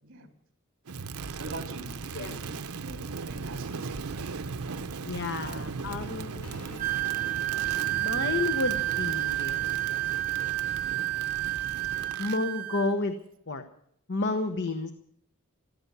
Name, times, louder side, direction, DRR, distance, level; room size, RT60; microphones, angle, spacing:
voice 1, 0.0-0.3 1.3-2.5 2.8-4.8 5.4-7.1 11.6-11.8, right 2 dB, 60° right, 3 dB, 3.3 m, -45 dB
Crackle, 0.9-12.4, right 4 dB, 90° right, 0.7 m, -38 dB
voice 2, 5.1-7.2 7.6-9.7 12.2-13.1 13.5-13.6 14.1-14.9, left 3 dB, 55° left, 7 dB, 1.0 m, -31 dB
sound 1, 6.1-13.3, equal, 85° left, 2.4 m, -53 dB
Wind instrument woodwind instrument, 6.8-12.9, right 17 dB, 40° right, 0.6 m, -30 dB
14.0 x 14.0 x 6.8 m, 0.68 s
head